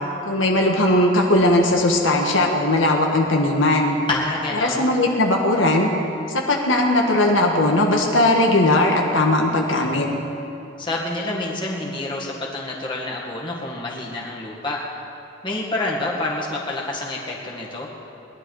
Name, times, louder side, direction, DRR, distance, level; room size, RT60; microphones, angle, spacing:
voice 1, 0.2-4.0 4.6-5.9 6.5-10.1, left 1 dB, 80° left, 0 dB, 1.6 m, -18 dB
voice 2, 4.1-4.9 10.8-14.8 15.4-17.9, left 2 dB, 25° left, -4 dB, 2.0 m, -28 dB
20.5 x 11.5 x 4.8 m, 2.9 s
head